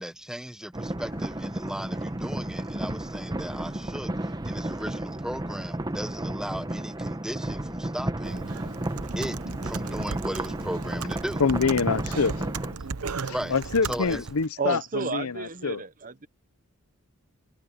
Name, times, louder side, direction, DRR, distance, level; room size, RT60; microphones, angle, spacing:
voice 1, 0.0-4.1 4.4-8.4 9.1-9.4 9.6-11.4 13.3-13.5 13.9-14.2, equal, 5° right, 1.1 m, -36 dB
sound 1, 0.7-12.7, right 1 dB, 20° right, 0.9 m, -33 dB
Computer keyboard, 8.2-14.5, right 5 dB, 75° right, 0.8 m, -36 dB
voice 2, 11.4-12.4 13.5-15.8, left 5 dB, 70° left, 0.7 m, -25 dB
voice 3, 14.6-16.3, right 4 dB, 40° right, 1.0 m, -31 dB
head